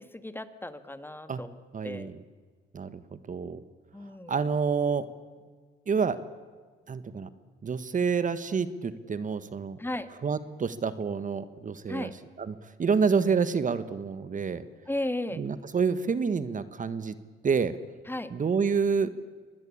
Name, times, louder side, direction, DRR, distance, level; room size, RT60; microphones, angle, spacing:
voice 1, 0.0-1.6 1.8-2.1 3.9-4.3 9.8-10.1 11.9-12.1 14.9-15.4 18.1-18.3, left 1 dB, 10° left, 11 dB, 1.8 m, -35 dB
voice 2, 1.7-2.2 2.7-3.0 3.3-3.6 4.3-5.1 5.9-6.2 6.9-7.3 7.6-9.8 10.2-12.1 12.4-14.6 15.4-17.1 17.4-17.7 18.3-19.1, right 5 dB, 40° right, 13 dB, 1.4 m, -28 dB
25.5 x 20.0 x 8.6 m, 1.5 s
cardioid pair, 90°, 20 cm